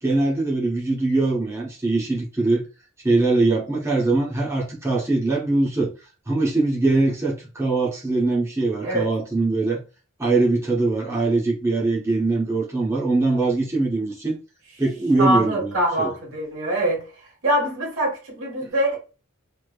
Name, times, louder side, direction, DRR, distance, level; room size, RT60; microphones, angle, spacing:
voice 1, 0.0-2.6 3.0-5.9 6.3-9.8 10.2-14.4 14.8-15.7 16.0-16.1 18.6-18.7, right 2 dB, 15° right, 0.9 m, -22 dB
voice 2, 15.2-17.0 17.4-19.0, right 1 dB, 70° right, 1.4 m, -23 dB
3.2 x 2.9 x 2.4 m
head